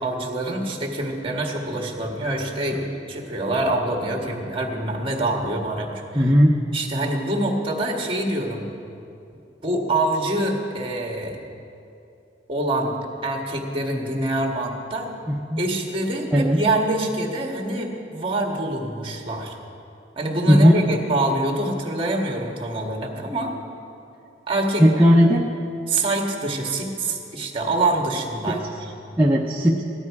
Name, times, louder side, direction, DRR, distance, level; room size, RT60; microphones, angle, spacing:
voice 1, 0.0-6.3 6.7-8.6 9.6-11.4 12.5-12.9 13.2-15.1 15.6-19.5 20.2-23.5 24.5-24.8 25.9-28.9, right 2 dB, 30° right, 1 dB, 1.7 m, -25 dB
voice 2, 6.1-6.5 15.3-15.6 16.3-16.6 20.5-20.8 24.8-25.5 28.5-28.6 29.2-29.8, equal, 10° right, -4 dB, 0.7 m, -16 dB
16.5 x 12.0 x 4.8 m, 2.6 s
head